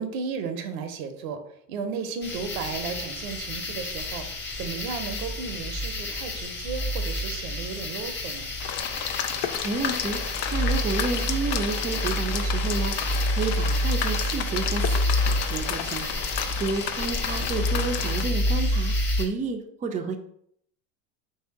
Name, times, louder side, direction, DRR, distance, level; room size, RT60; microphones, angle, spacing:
voice 1, 0.0-1.4 1.7-4.3 4.6-8.5, right 5 dB, 75° right, 7 dB, 0.8 m, -34 dB
sound 1, 2.2-19.2, left 1 dB, 25° left, 1.3 m, -28 dB
sound 2, 8.6-18.2, left 9 dB, 65° left, 0.6 m, -32 dB
voice 2, 9.3-20.2, right 3 dB, 20° right, 4 dB, 0.4 m, -31 dB
3.2 x 2.8 x 4.4 m, 0.69 s
hypercardioid pair, 85°, 43 cm